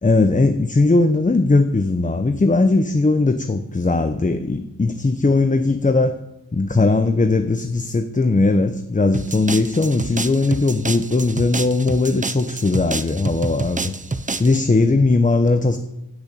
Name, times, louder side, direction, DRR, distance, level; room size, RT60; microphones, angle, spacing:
voice 1, 0.0-6.2 6.5-13.9 14.4-15.8, left 3 dB, 20° left, 8 dB, 1.1 m, -18 dB
sound 1, 9.1-14.6, right 3 dB, 20° right, 0.9 m, -28 dB
16.0 x 6.9 x 8.6 m, 0.93 s
cardioid pair, 80°, 34 cm